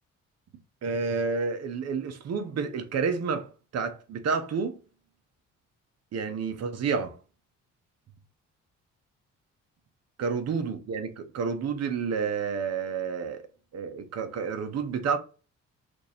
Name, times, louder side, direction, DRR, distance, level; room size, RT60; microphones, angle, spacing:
voice 1, 0.8-3.5 3.7-4.8 6.1-7.2 10.2-13.4 13.7-15.2, right 5 dB, 55° right, 0.8 m, -30 dB
3.0 x 2.6 x 4.1 m
cardioid pair, 90°, 30 cm